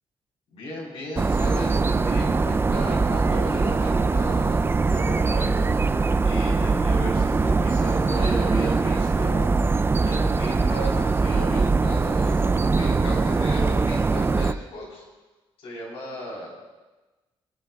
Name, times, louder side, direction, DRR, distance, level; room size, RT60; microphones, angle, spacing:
voice 1, 0.5-5.8 6.2-9.5 10.0-15.0 15.6-16.5, equal, 85° left, -3 dB, 3.9 m, -35 dB
sound 1, 1.2-14.5, right 4 dB, 25° right, 0.4 m, -22 dB
23.0 x 10.5 x 2.3 m, 1.2 s
cardioid pair, 85°, 10 cm